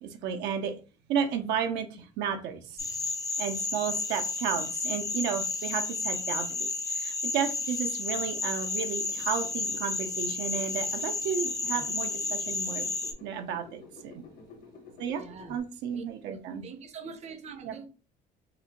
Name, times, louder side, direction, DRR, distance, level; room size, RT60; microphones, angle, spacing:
voice 1, 0.0-0.8 1.1-2.8 3.4-12.8 13.2-14.2 15.0-15.2 15.5-16.6 17.7-17.8, right 7 dB, 85° right, 0.6 m, -33 dB
sound 1, 2.8-13.1, left 3 dB, 20° left, 0.4 m, -32 dB
sound 2, 8.8-15.6, left 3 dB, 55° left, 0.9 m, -51 dB
voice 2, 15.2-15.6 15.9-17.9, right 6 dB, 40° right, 0.5 m, -44 dB
3.9 x 2.1 x 2.8 m
cardioid pair, 110°, 17 cm